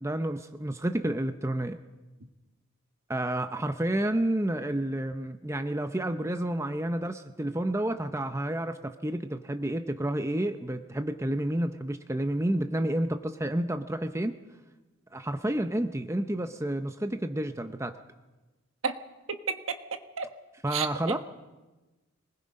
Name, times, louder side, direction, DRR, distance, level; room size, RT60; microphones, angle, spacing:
voice 1, 0.0-1.8 3.1-14.4 15.1-17.9 20.6-21.2, right 1 dB, 15° right, 8 dB, 0.6 m, -30 dB
voice 2, 19.3-19.8 20.2-20.3 20.7-20.9, right 6 dB, 65° right, 8 dB, 1.3 m, -30 dB
26.0 x 20.0 x 5.3 m, 1.2 s
head